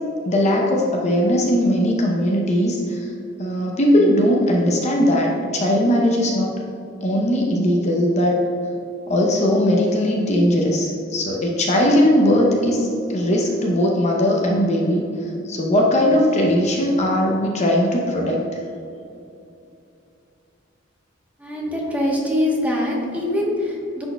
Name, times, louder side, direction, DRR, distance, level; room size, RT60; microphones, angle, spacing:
voice 1, 0.3-3.1 3.4-6.5 7.0-8.4 9.1-15.0 15.4-18.4, equal, 35° left, -1 dB, 0.6 m, -19 dB
voice 2, 21.4-24.1, left 1 dB, 10° right, -3 dB, 1.0 m, -23 dB
10.5 x 4.4 x 2.2 m, 2.7 s
head